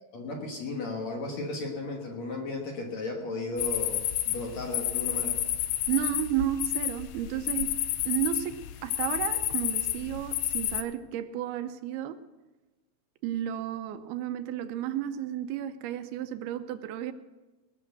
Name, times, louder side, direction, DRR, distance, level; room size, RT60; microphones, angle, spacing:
voice 1, 0.1-4.0 4.3-5.4, left 2 dB, 55° left, 0 dB, 2.2 m, -35 dB
sound 1, 3.6-10.8, left 13 dB, 85° left, 1.8 m, -30 dB
voice 2, 5.9-7.8 8.1-12.2 13.2-17.1, right 11 dB, 80° right, 10 dB, 2.6 m, -32 dB
20.0 x 6.7 x 7.9 m, 1.2 s
omnidirectional pair, 4.6 m